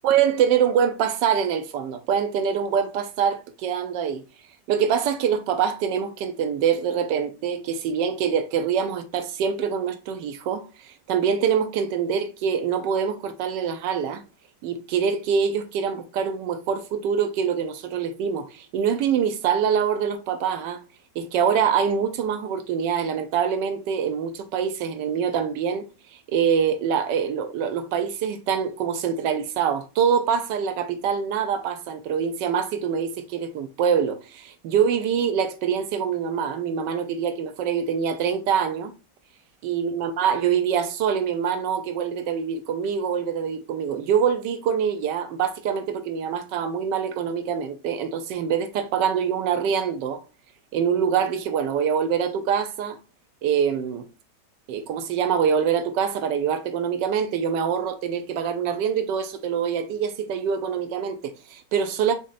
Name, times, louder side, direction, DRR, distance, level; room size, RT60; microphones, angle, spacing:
voice 1, 0.0-4.2 4.7-14.2 14.6-20.8 21.2-25.9 26.3-38.9 39.6-50.2 50.7-53.0 53.4-54.0 54.7-62.1, right 7 dB, 90° right, 1.3 m, -24 dB
5.2 x 3.7 x 2.5 m
omnidirectional pair, 1.9 m